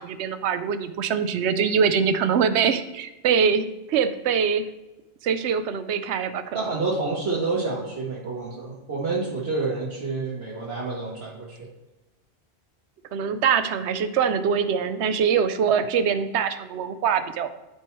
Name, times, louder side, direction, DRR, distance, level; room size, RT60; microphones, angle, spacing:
voice 1, 0.0-4.7 5.2-6.6 13.1-17.5, right 6 dB, 80° right, 11 dB, 0.9 m, -23 dB
voice 2, 6.5-11.7, right 3 dB, 65° right, -6 dB, 1.4 m, -28 dB
12.5 x 4.5 x 3.1 m, 1.0 s
omnidirectional pair, 1.1 m